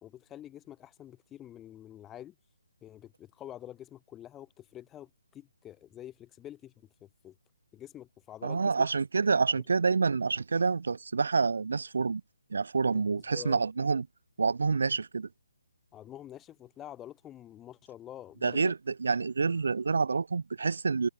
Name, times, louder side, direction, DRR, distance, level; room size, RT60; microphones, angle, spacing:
voice 1, 0.0-2.4 2.8-7.4 7.7-8.9 9.5-9.6 12.9-13.6 15.9-18.7, left 12 dB, 10° left, 2.4 m, -47 dB
voice 2, 8.4-12.2 12.5-14.1 14.4-15.3 18.4-21.1, right 4 dB, 70° right, 1.1 m, -28 dB
hypercardioid pair, 155°, 0 cm